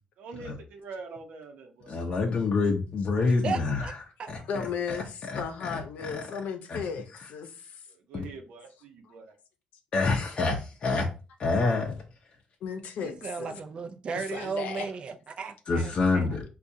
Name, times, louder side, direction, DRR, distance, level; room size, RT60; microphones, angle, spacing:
voice 1, 0.2-2.0 7.9-9.3, right 4 dB, 85° right, 0.7 m, -44 dB
voice 2, 1.9-4.0 4.3-5.0 5.2-6.3 6.7-6.8 7.2-7.3 8.1-8.2 9.9-11.1 11.4-12.0 15.7-16.4, left 3 dB, 40° left, 0.6 m, -27 dB
voice 3, 3.2-3.9 4.2-4.3 13.0-16.3, right 5 dB, 40° right, 0.4 m, -35 dB
voice 4, 4.5-7.7 12.6-13.6 14.1-14.9, left 6 dB, 80° left, 0.6 m, -35 dB
4.7 x 2.3 x 2.7 m
cardioid pair, 140°, 3 cm